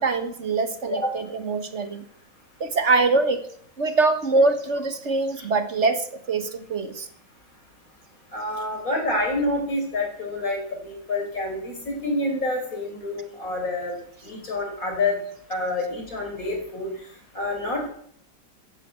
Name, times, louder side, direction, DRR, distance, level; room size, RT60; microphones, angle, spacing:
voice 1, 0.0-2.0 2.6-3.5 3.8-7.1, right 3 dB, 40° right, 9 dB, 1.5 m, -23 dB
voice 2, 8.3-13.9 14.2-15.2 15.5-16.9 17.3-17.9, left 2 dB, 45° left, 1 dB, 5.5 m, -27 dB
14.5 x 9.1 x 8.3 m, 0.62 s
omnidirectional pair, 2.0 m